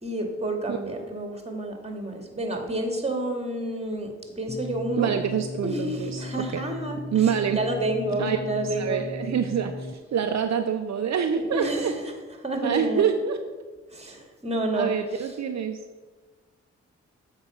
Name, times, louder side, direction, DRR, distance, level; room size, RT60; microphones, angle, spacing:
voice 1, 0.0-5.1 5.6-9.1 11.3-12.0 12.4-13.1 13.9-15.3, right 1 dB, 20° right, 3 dB, 2.2 m, -30 dB
sound 1, 4.5-9.9, left 1 dB, 20° left, 0.8 m, -36 dB
voice 2, 5.0-6.6 7.1-7.6 8.2-8.4 8.8-11.9 12.6-13.4 14.1-14.2 14.7-15.8, right 8 dB, 65° right, 7 dB, 0.6 m, -26 dB
7.8 x 4.9 x 7.1 m, 1.3 s
cardioid pair, 50°, 29 cm